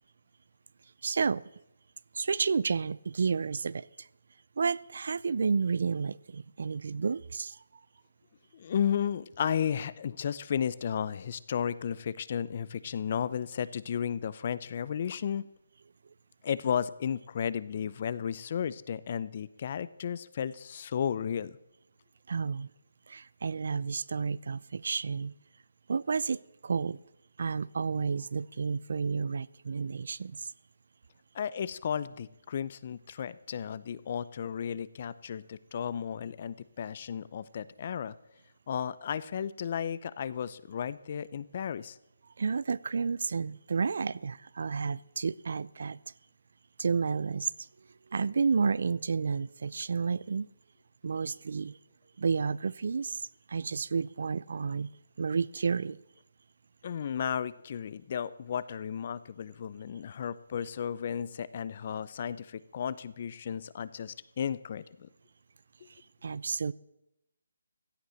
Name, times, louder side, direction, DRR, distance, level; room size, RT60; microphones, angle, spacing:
voice 1, 1.0-1.4 2.1-4.1 4.6-7.6 22.3-22.7 23.1-25.3 25.9-27.0 27.4-30.5 42.4-46.0 46.8-47.7 48.1-50.5 51.0-51.8 52.2-53.2 53.5-54.9 55.2-56.0 66.2-66.7, right 5 dB, 60° right, 22 dB, 0.4 m, -31 dB
voice 2, 8.5-15.4 16.4-21.5 31.3-38.1 38.7-42.0 56.8-65.1, left 8 dB, 40° left, 18 dB, 0.6 m, -34 dB
16.0 x 10.5 x 6.4 m, 0.87 s
hypercardioid pair, 160°, 0 cm